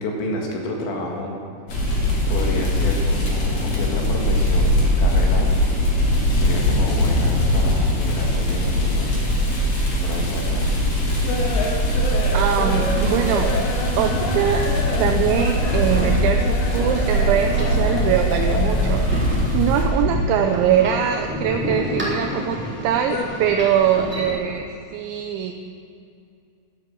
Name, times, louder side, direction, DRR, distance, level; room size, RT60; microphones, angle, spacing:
voice 1, 0.0-1.4 2.3-5.5 6.3-9.1 10.0-10.7, left 1 dB, 70° left, 0 dB, 3.9 m, -30 dB
sound 1, 1.7-19.9, equal, 40° left, 3.5 m, -21 dB
sound 2, 11.3-19.2 19.4-20.6 20.9-22.3 22.6-23.2, left 2 dB, 90° left, 4.0 m, -30 dB
voice 2, 12.3-13.5 14.0-14.7 15.0-25.5, right 9 dB, 80° right, 4 dB, 2.9 m, -22 dB
sound 3, 12.8-24.3, left 1 dB, 5° right, 2.7 m, -31 dB
12.0 x 11.0 x 7.5 m, 2.4 s
omnidirectional pair, 5.6 m